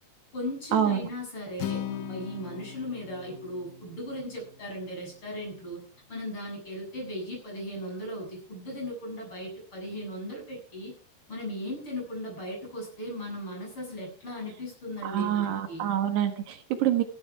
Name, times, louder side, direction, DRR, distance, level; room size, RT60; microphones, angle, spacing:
voice 1, 0.3-5.8 6.1-10.9 11.3-15.9, equal, 30° left, 0 dB, 8.4 m, -37 dB
Acoustic guitar, 1.6-5.8, left 9 dB, 70° left, 2.1 m, -40 dB
voice 2, 15.0-17.0, right 10 dB, 75° right, 7 dB, 3.4 m, -26 dB
15.5 x 13.0 x 4.8 m, 0.42 s
omnidirectional pair, 5.1 m